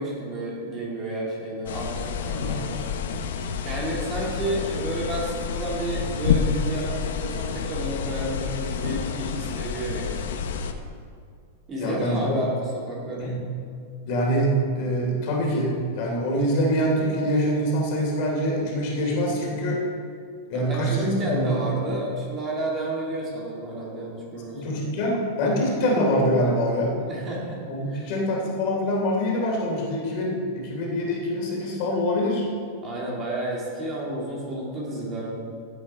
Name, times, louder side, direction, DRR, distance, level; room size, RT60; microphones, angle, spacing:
voice 1, 0.0-2.9 3.6-10.3 11.7-13.4 20.5-24.8 27.0-28.1 32.8-35.4, right 1 dB, 20° right, -4 dB, 2.3 m, -31 dB
sound 1, 1.7-10.7, left 6 dB, 80° left, 0.9 m, -29 dB
voice 2, 11.8-12.4 13.1-13.4 14.0-19.8 20.5-21.7 24.5-26.9 27.7-32.5, equal, 45° left, -2 dB, 3.0 m, -24 dB
15.0 x 7.9 x 4.2 m, 2.3 s
supercardioid pair, 160°, 0 cm